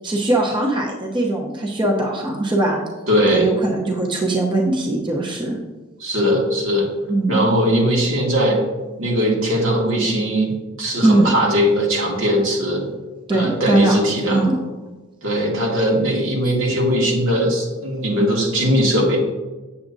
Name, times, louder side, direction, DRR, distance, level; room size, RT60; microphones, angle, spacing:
voice 1, 0.0-2.8 3.3-5.6 7.1-7.5 11.0-11.3 13.3-14.0 14.3-14.6, right 2 dB, 25° right, 0 dB, 0.8 m, -20 dB
voice 2, 3.1-3.5 6.0-6.9 7.3-8.6 9.0-10.5 10.8-12.8 13.3-14.4 15.2-19.2, equal, 85° right, -3 dB, 2.0 m, -19 dB
8.2 x 7.2 x 2.7 m, 1.2 s
head